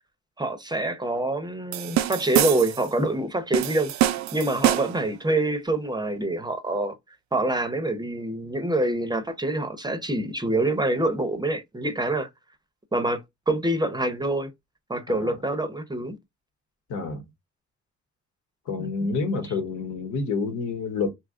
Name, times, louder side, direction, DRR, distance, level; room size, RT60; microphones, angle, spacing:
voice 1, 0.4-3.9 4.3-6.9 7.3-12.3 12.9-14.5 14.9-16.2 18.8-18.9, right 2 dB, 15° right, 0.6 m, -26 dB
sound 1, 1.7-2.9 3.5-5.1, right 12 dB, 65° right, 0.5 m, -25 dB
voice 2, 16.9-17.2 18.7-21.1, left 4 dB, 80° left, 1.2 m, -28 dB
2.8 x 2.4 x 3.6 m
cardioid pair, 90°, 30 cm